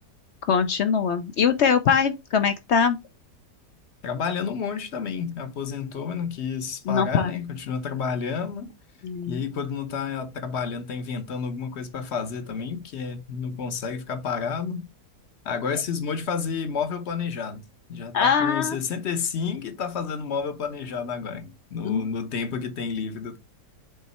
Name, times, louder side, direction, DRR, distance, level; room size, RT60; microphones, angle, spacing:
voice 1, 0.5-3.0 6.9-7.3 9.0-9.4 18.1-18.8 21.8-22.0, left 6 dB, 65° left, 0.6 m, -22 dB
voice 2, 4.0-8.7 9.3-14.9 15.4-17.6 17.9-23.4, left 6 dB, 50° left, 0.9 m, -30 dB
7.3 x 3.2 x 4.2 m
omnidirectional pair, 1.8 m